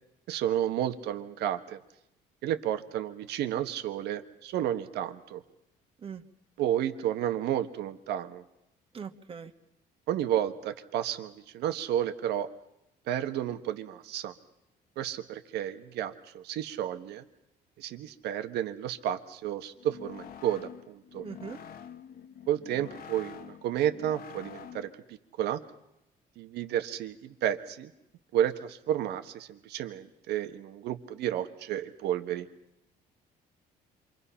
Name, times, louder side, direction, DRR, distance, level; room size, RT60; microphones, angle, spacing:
voice 1, 0.3-1.8 2.4-5.4 6.6-8.4 10.1-12.5 13.1-14.3 15.0-17.2 17.8-21.2 22.5-25.6 26.4-27.9 28.3-32.5, right 11 dB, 80° right, 8 dB, 1.5 m, -31 dB
voice 2, 8.9-9.5 21.2-21.6, right 6 dB, 35° right, 6 dB, 1.7 m, -41 dB
sound 1, 19.8-25.0, left 8 dB, 60° left, 1.2 m, -47 dB
27.5 x 24.0 x 5.7 m, 0.85 s
cardioid pair, 110°, 17 cm